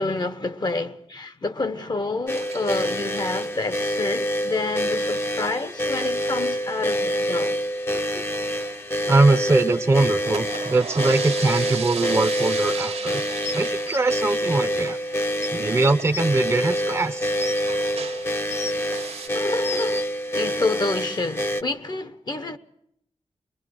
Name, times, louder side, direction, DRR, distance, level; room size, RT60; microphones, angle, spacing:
voice 1, 0.0-7.6 7.9-8.2 11.1-11.2 19.3-20.0 20.3-22.6, left 3 dB, 40° left, 1.0 m, -28 dB
sound 1, 2.3-21.6, equal, 20° left, 0.8 m, -26 dB
sound 2, 2.3-3.5 4.7-5.0 5.2-5.3 5.5-5.6 5.9-6.0 6.7-7.3 7.7-9.6 10.1-18.4 18.8-19.3, right 5 dB, 80° right, 1.4 m, -37 dB
voice 2, 9.1-13.2 13.5-15.0 15.5-17.3, right 3 dB, 25° right, 0.7 m, -22 dB
sound 3, 13.4-14.0 15.0-15.1 15.4-15.5 16.1-16.2 17.0-17.6 18.3-18.9 19.4-20.0 21.0-21.1, left 3 dB, 85° left, 1.1 m, -34 dB
23.5 x 21.5 x 6.3 m
wide cardioid pair, 110°, 11 cm